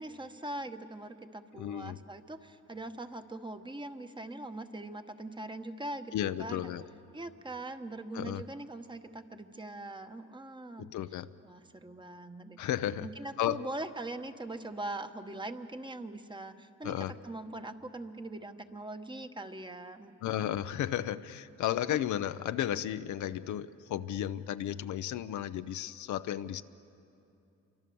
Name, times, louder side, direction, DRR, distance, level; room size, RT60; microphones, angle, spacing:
voice 1, 0.0-6.7 7.1-10.9 11.4-12.6 13.0-20.1, right 2 dB, 15° right, 8 dB, 1.2 m, -42 dB
voice 2, 1.5-2.0 6.1-6.8 8.1-8.4 10.8-11.3 12.6-13.1 13.4-13.6 16.8-17.1 20.2-26.6, left 11 dB, 75° left, 11 dB, 0.7 m, -33 dB
27.5 x 24.5 x 7.0 m, 2.7 s
cardioid pair, 90°, 30 cm